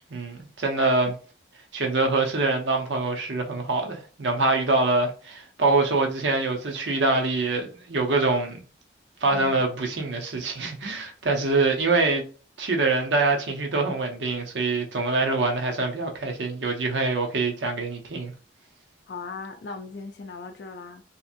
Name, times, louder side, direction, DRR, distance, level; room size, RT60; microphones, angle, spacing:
voice 1, 0.1-1.2 1.7-8.6 9.2-12.2 12.6-18.3, right 3 dB, 80° right, 0.7 m, -24 dB
voice 2, 9.3-9.6 19.1-21.0, left 4 dB, 65° left, 0.4 m, -38 dB
2.8 x 2.6 x 2.5 m
head